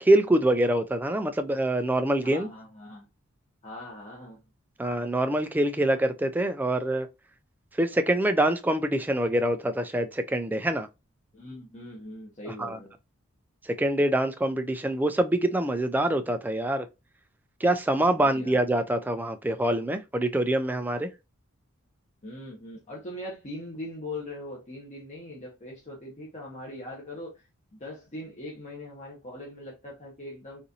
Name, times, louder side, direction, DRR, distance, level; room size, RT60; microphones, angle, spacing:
voice 1, 0.0-2.5 4.8-7.1 7.8-10.9 12.5-12.8 13.6-16.9 17.6-21.1, right 1 dB, 10° right, 0.3 m, -25 dB
voice 2, 2.2-3.1 3.6-4.4 11.3-12.9 18.2-18.6 22.2-27.4 27.7-30.6, left 1 dB, 35° left, 1.0 m, -41 dB
4.0 x 2.5 x 2.7 m
head